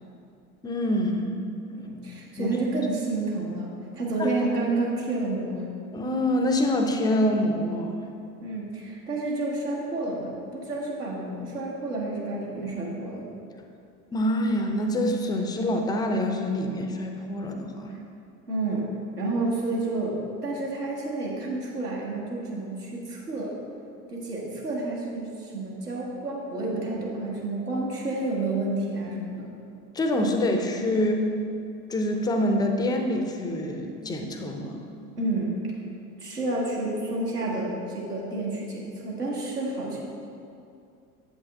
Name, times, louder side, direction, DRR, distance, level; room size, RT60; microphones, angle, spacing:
voice 1, 0.6-1.3 2.4-2.6 4.2-4.3 5.9-8.0 14.1-17.9 29.9-31.3 31.9-34.8, left 1 dB, 10° left, 3 dB, 0.3 m, -26 dB
voice 2, 1.7-5.6 8.4-13.3 18.5-18.9 19.2-23.6 24.1-29.5 35.2-35.6 36.2-40.0, right 2 dB, 85° right, -4 dB, 1.3 m, -30 dB
7.6 x 5.5 x 3.5 m, 2.5 s
figure-of-eight pair, 70°, 45 cm